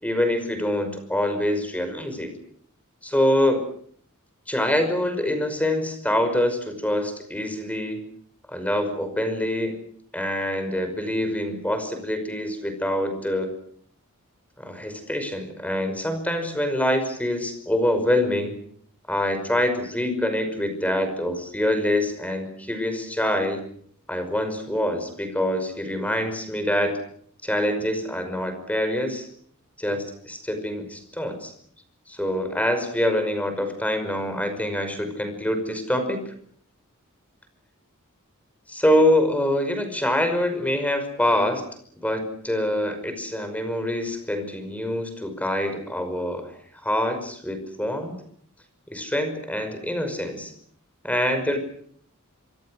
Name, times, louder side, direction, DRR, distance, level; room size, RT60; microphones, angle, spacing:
voice 1, 0.0-2.3 3.0-3.6 4.5-8.0 8.5-9.8 10.1-13.5 14.6-18.6 19.1-23.6 24.1-27.0 27.4-29.3 29.8-31.5 32.1-36.3 38.7-41.6 42.0-46.5 46.8-48.2 48.9-50.5 51.0-51.6, left 1 dB, 5° left, 8 dB, 5.6 m, -25 dB
26.5 x 26.5 x 6.4 m, 0.62 s
head